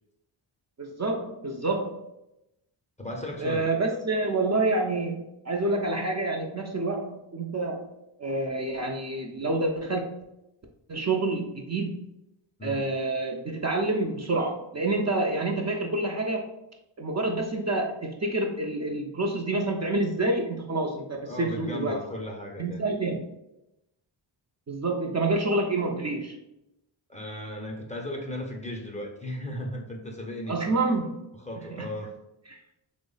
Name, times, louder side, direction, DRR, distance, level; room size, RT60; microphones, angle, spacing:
voice 1, 0.8-2.0 3.4-7.9 8.2-10.2 10.9-12.1 12.6-16.5 17.0-22.0 22.6-23.3 24.7-26.4 30.5-31.3 31.7-31.9 32.5-32.6, right 2 dB, 35° right, 1 dB, 0.5 m, -28 dB
voice 2, 3.0-3.7 12.6-12.8 21.3-22.9 27.1-30.9 31.4-32.2, left 1 dB, 15° left, 1 dB, 0.5 m, -36 dB
3.0 x 2.1 x 3.8 m, 0.88 s
cardioid pair, 55°, 49 cm